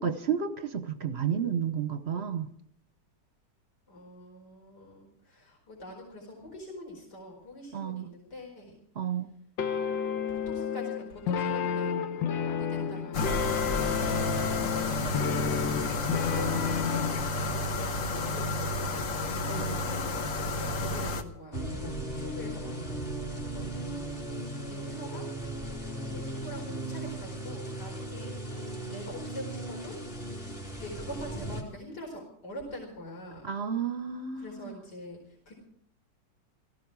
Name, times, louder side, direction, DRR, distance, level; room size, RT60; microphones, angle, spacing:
voice 1, 0.0-2.5 7.7-8.0 9.0-9.3 19.5-19.7 33.4-34.8, right 7 dB, 45° right, 10 dB, 1.0 m, -31 dB
voice 2, 3.9-8.8 10.3-12.0 12.4-14.0 14.6-15.9 16.2-23.0 23.3-24.1 24.6-28.3 28.9-29.9 30.7-33.4 34.3-35.5, left 1 dB, 65° left, -1 dB, 5.0 m, -44 dB
sound 1, 9.6-17.3, left 7 dB, 80° left, 1.7 m, -31 dB
sound 2, 13.1-21.2, left 2 dB, 50° left, 1.5 m, -31 dB
sound 3, 21.5-31.6, right 1 dB, 30° left, 3.4 m, -37 dB
17.5 x 15.0 x 4.8 m, 0.67 s
omnidirectional pair, 2.0 m